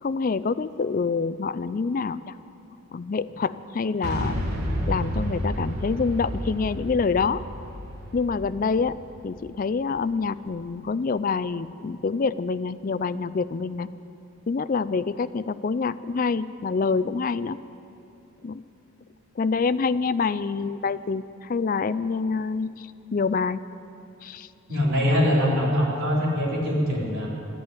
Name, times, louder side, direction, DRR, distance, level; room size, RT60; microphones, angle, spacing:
voice 1, 0.0-2.3 2.9-4.4 4.9-7.4 8.1-8.9 9.2-13.9 14.5-17.6 18.4-18.6 19.4-23.6 24.2-24.5, left 4 dB, 40° left, 15 dB, 0.3 m, -26 dB
Boom, 4.0-9.9, equal, 80° right, 2.2 m, -31 dB
voice 2, 24.7-27.3, equal, 65° right, -5 dB, 3.9 m, -23 dB
13.0 x 10.5 x 9.0 m, 2.7 s
head